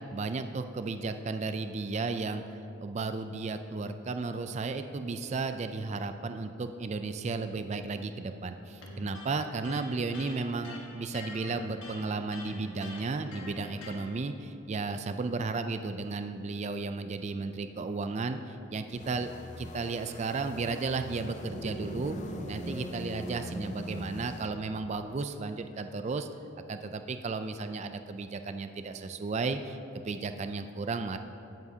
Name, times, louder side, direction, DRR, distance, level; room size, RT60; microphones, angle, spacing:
voice 1, 0.1-2.4 2.8-19.3 19.6-22.2 22.5-26.3 26.7-31.2, right 3 dB, 35° right, 9 dB, 0.3 m, -34 dB
Electric guitar, 8.8-14.1, left 2 dB, 65° left, 1.6 m, -45 dB
sound 1, 19.0-24.5, left 2 dB, 35° left, 0.5 m, -46 dB
sound 2, 21.3-24.9, equal, 5° right, 1.6 m, -39 dB
17.0 x 7.2 x 2.8 m, 2.8 s
head